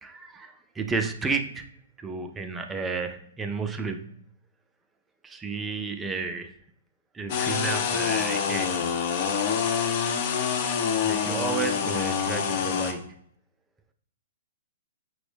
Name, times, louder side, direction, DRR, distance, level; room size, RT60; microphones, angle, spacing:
voice 1, 0.0-1.7 2.0-4.2 5.2-6.5 7.1-8.8 11.0-13.2, right 4 dB, 15° right, 7 dB, 0.4 m, -32 dB
sound 1, 7.3-12.9, left 7 dB, 45° left, 0.6 m, -26 dB
5.9 x 2.0 x 3.3 m, 0.64 s
hypercardioid pair, 125°, 0 cm